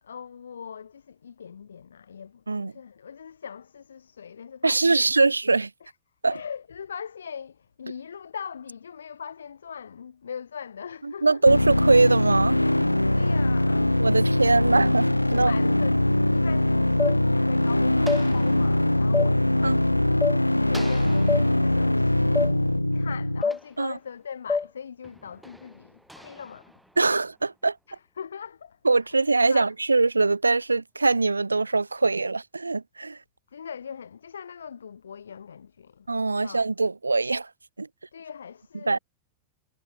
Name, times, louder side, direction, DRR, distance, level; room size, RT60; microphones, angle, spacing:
voice 1, 0.0-5.1 5.8-5.9 6.3-11.4 13.1-14.0 15.3-16.0 16.3-26.8 27.9-28.8 29.1-29.7 33.5-36.1 36.4-36.6 38.1-39.0, left 7 dB, 70° left, 2.2 m, -40 dB
voice 2, 4.6-5.7 6.2-6.3 11.2-12.6 14.0-15.5 19.6-19.8 23.8-23.9 27.0-27.8 28.8-33.2 36.1-37.5 37.8-37.9 38.9-39.0, right 3 dB, 80° right, 0.6 m, -22 dB
sound 1, 11.5-23.4, left 1 dB, 85° left, 0.6 m, -22 dB
sound 2, 17.0-17.2 18.1-18.2 19.1-19.3 20.2-20.4 21.3-21.4 22.4-22.5 23.4-23.6 24.5-24.7, left 4 dB, 15° left, 0.6 m, -24 dB
sound 3, 17.7-20.2 20.7-24.4 25.0-27.7, right 1 dB, 5° right, 4.2 m, -49 dB
figure-of-eight pair, 90°, 0 cm